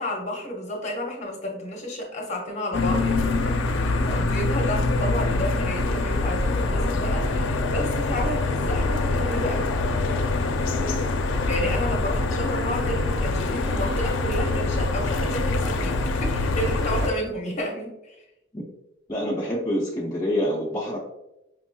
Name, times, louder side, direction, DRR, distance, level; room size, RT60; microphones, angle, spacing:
voice 1, 0.0-9.7 11.4-18.1, equal, 35° left, 0 dB, 0.8 m, -31 dB
sound 1, 2.7-17.1, left 2 dB, 75° left, 0.4 m, -24 dB
voice 2, 10.6-10.9 18.5-18.6 19.1-21.0, equal, 20° left, -5 dB, 0.4 m, -27 dB
5.1 x 2.9 x 2.2 m, 0.91 s
head